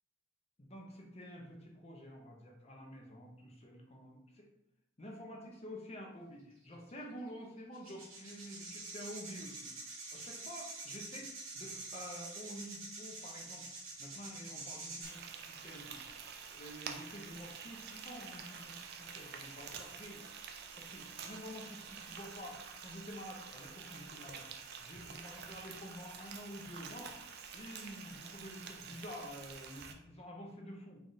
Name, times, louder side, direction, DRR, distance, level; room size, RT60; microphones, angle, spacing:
voice 1, 0.6-4.5 5.0-13.7 14.0-16.0 16.5-20.2 20.5-24.5 24.8-27.2 27.5-31.0, equal, 30° left, 0 dB, 0.7 m, -49 dB
sound 1, 6.9-7.0 7.7-15.1, right 3 dB, 85° right, 1.2 m, -46 dB
Frying (food), 15.0-29.9, right 6 dB, 50° right, 0.4 m, -48 dB
3.5 x 2.4 x 4.0 m, 0.81 s
head